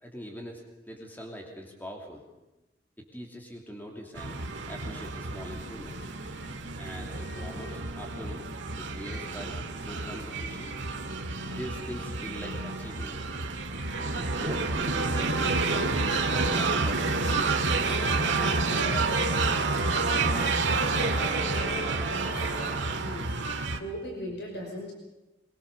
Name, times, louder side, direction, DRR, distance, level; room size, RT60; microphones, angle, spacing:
voice 1, 0.0-2.2 3.1-4.4 4.7-6.1 6.8-8.5 8.8-10.7 11.4-13.2 14.0-15.9 16.2-17.6, equal, 10° left, 1 dB, 3.0 m, -42 dB
sound 1, 4.2-23.8, right 3 dB, 90° right, 2.2 m, -29 dB
sound 2, 17.7-22.9, left 1 dB, 40° left, 4.4 m, -39 dB
voice 2, 22.1-23.3 23.6-24.9, equal, 65° left, -1 dB, 5.5 m, -39 dB
23.5 x 22.5 x 6.9 m, 1.0 s
head